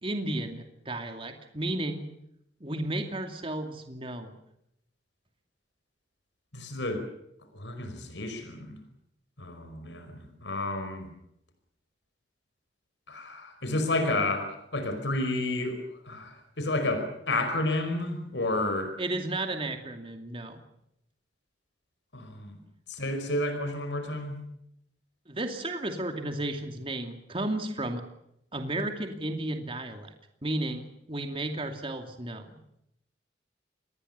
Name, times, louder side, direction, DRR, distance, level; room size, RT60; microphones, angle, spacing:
voice 1, 0.0-2.1 2.6-4.3 19.0-20.6 25.3-28.0 28.5-30.1 30.4-32.6, right 1 dB, 30° right, 5 dB, 2.5 m, -33 dB
voice 2, 6.5-7.0 7.5-8.8 9.4-11.1 13.1-18.9 22.1-22.6 22.9-24.4, left 2 dB, 90° left, 7 dB, 5.2 m, -31 dB
27.0 x 20.5 x 6.8 m, 0.77 s
head